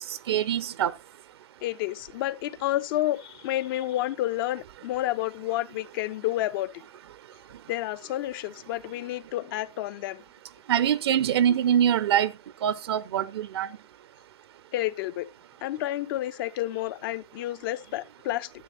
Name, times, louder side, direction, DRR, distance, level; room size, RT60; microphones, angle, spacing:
voice 1, 0.1-0.9 10.7-12.3 12.6-13.7, right 10 dB, 70° right, 0.7 m, -24 dB
voice 2, 1.6-6.8 7.7-10.2 14.7-15.3 15.6-18.5, left 15 dB, 55° left, 0.9 m, -30 dB
13.0 x 8.3 x 4.1 m
hypercardioid pair, 105°, 14 cm